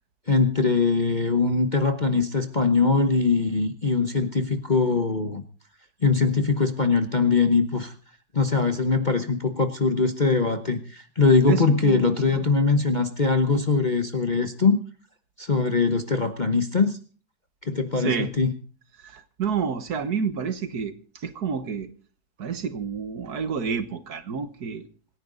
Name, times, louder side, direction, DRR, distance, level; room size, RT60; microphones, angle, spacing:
voice 1, 0.3-5.4 6.0-7.9 8.3-14.8 15.4-17.0 17.7-18.5, left 4 dB, 30° left, 1.0 m, -22 dB
voice 2, 11.5-12.5 18.0-18.3 19.0-20.9 21.2-21.9 22.4-24.9, right 6 dB, 60° right, 1.7 m, -29 dB
26.5 x 10.5 x 3.9 m
omnidirectional pair, 2.0 m